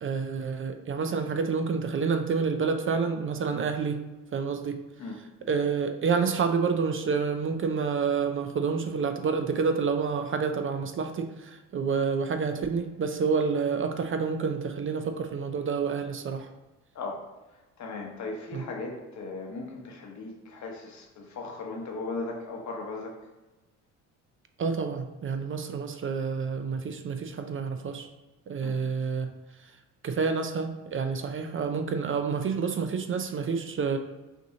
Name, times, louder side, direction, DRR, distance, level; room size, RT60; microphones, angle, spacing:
voice 1, 0.0-4.0 4.3-4.8 5.5-16.5 18.5-18.6 24.6-28.1 28.5-29.3 30.0-34.0, right 5 dB, 40° right, 6 dB, 0.5 m, -28 dB
voice 2, 16.9-17.2 17.8-23.1 28.6-28.8, left 3 dB, 55° left, 1 dB, 1.1 m, -37 dB
6.0 x 2.7 x 2.8 m, 1.1 s
supercardioid pair, 80°, 34 cm